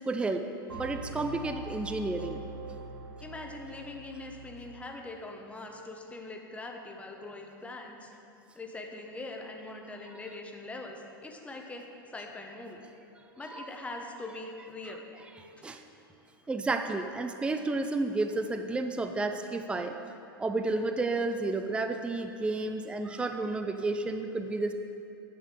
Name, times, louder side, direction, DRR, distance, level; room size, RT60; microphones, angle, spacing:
voice 1, 0.1-0.4 0.7-2.4 13.5-13.7 15.6-15.8 16.5-20.0 20.4-24.7, right 2 dB, 10° right, 7 dB, 0.5 m, -31 dB
sound 1, 0.7-4.9, right 2 dB, 90° right, 1.7 m, -43 dB
voice 2, 3.2-8.1 8.5-11.9 12.1-12.8 13.4-15.0 15.6-15.8, left 2 dB, 10° left, 2 dB, 1.1 m, -42 dB
9.7 x 6.4 x 6.7 m, 2.8 s
figure-of-eight pair, 95°, 12 cm